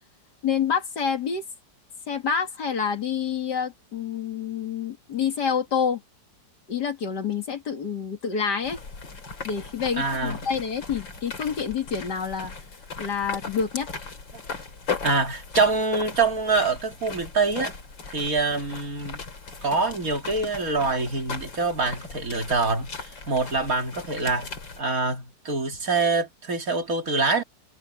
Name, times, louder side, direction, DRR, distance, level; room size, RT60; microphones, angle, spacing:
voice 1, 0.4-1.4 2.1-6.0 6.7-8.8 9.4-12.5 13.0-13.9, left 7 dB, 65° left, 2.6 m, -27 dB
sound 1, 8.6-24.8, left 4 dB, 85° left, 4.1 m, -38 dB
voice 2, 10.0-10.4 15.0-17.7 18.1-19.2 19.6-27.4, right 3 dB, 50° right, 2.7 m, -25 dB
omnidirectional pair, 2.0 m